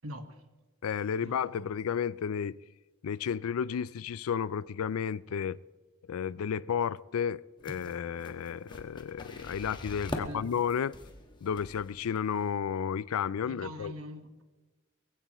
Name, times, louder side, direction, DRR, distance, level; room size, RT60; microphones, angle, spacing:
voice 1, 0.0-0.4 1.2-1.7 10.1-10.4 13.4-14.4, equal, 75° right, 1.6 m, -43 dB
voice 2, 0.8-2.6 3.0-5.6 6.1-10.9 11.4-13.9, left 7 dB, 85° left, 0.4 m, -32 dB
sound 1, 7.6-12.6, left 1 dB, 20° left, 1.4 m, -44 dB
22.0 x 16.0 x 3.1 m
head